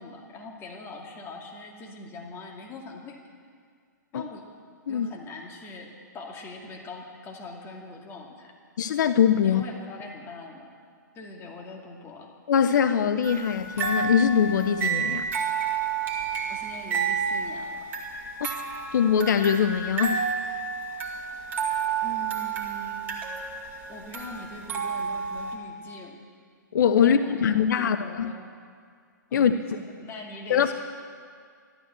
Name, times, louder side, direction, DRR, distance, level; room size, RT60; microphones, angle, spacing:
voice 1, 0.0-3.2 4.1-4.4 4.9-8.5 9.4-10.7 11.1-12.3 16.5-17.9 22.0-23.1 23.9-26.2 27.0-28.5 29.3-30.7, left 2 dB, 20° left, 0 dB, 2.4 m, -42 dB
voice 2, 8.8-9.6 12.5-15.3 18.4-18.5 18.9-20.2 26.7-28.3 29.3-29.5 30.5-30.7, left 8 dB, 65° left, 10 dB, 0.7 m, -22 dB
sound 1, 13.2-25.6, right 6 dB, 20° right, 2.2 m, -30 dB
13.5 x 12.0 x 7.6 m, 2.1 s
hypercardioid pair, 125°, 10 cm